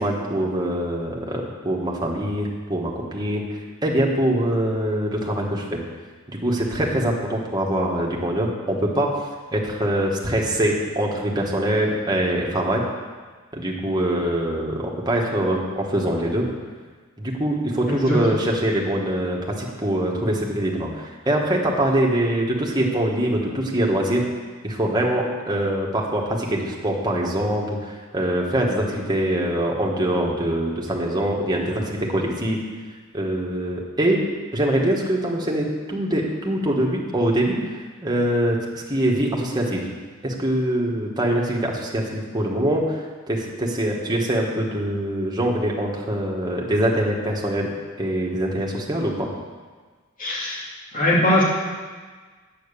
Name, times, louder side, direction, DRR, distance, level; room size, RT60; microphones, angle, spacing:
voice 1, 0.0-3.4 3.8-5.8 6.3-9.1 9.5-12.8 13.5-16.5 17.2-24.2 24.6-32.6 33.1-34.2 34.5-37.6 38.0-39.8 40.2-47.7 48.0-49.3, right 1 dB, 20° right, -2 dB, 1.7 m, -23 dB
voice 2, 17.9-18.4 50.2-50.6 50.9-51.4, left 1 dB, 40° left, -5 dB, 2.5 m, -21 dB
9.2 x 8.5 x 6.9 m, 1.4 s
head